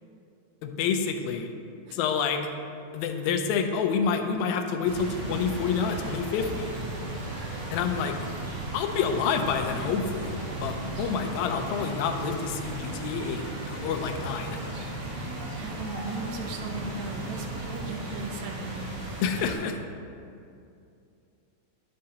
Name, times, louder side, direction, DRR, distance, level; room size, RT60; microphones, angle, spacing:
voice 1, 0.6-1.5 1.9-2.5 2.9-6.7 7.7-8.2 8.7-14.9 19.2-19.8, left 6 dB, 80° left, 6 dB, 1.9 m, -28 dB
sound 1, 4.8-19.5, right 1 dB, 50° right, 1.9 m, -35 dB
voice 2, 15.5-18.9, right 3 dB, 80° right, 3 dB, 1.9 m, -37 dB
10.5 x 6.5 x 2.8 m, 2.5 s
omnidirectional pair, 3.3 m